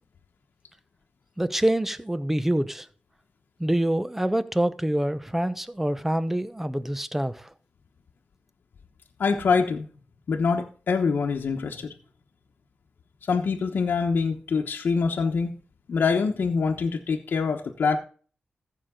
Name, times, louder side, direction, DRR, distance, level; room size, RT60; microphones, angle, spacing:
voice 1, 1.4-2.9 3.6-7.5, right 1 dB, 10° right, 0.9 m, -26 dB
voice 2, 9.2-9.9 10.3-11.9 13.2-15.5 15.9-18.0, left 5 dB, 75° left, 1.1 m, -25 dB
14.5 x 6.7 x 3.8 m
cardioid pair, 80°, 3 cm